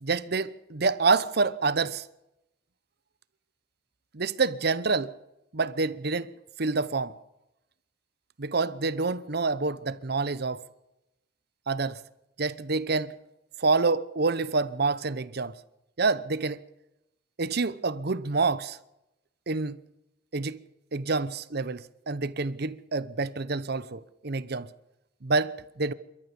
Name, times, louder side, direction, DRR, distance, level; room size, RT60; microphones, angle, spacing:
voice 1, 0.0-2.1 4.1-5.2 5.5-6.3 6.6-7.2 8.4-10.6 11.7-12.0 12.4-13.1 13.6-15.6 16.0-16.6 17.4-18.8 19.5-19.8 20.3-20.6 20.9-24.7 25.2-25.9, right 4 dB, 60° right, 0.9 m, -27 dB
28.5 x 13.5 x 7.1 m
head